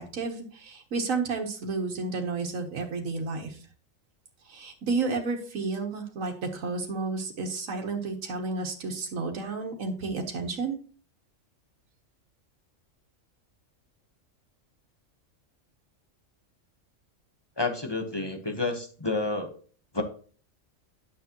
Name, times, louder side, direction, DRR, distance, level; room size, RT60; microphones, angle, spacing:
voice 1, 0.0-3.6 4.4-10.8, right 3 dB, 90° right, 1 dB, 1.6 m, -31 dB
voice 2, 17.6-19.5 19.9-20.0, left 3 dB, 20° left, 3 dB, 1.1 m, -29 dB
9.5 x 7.1 x 3.0 m, 0.41 s
omnidirectional pair, 1.3 m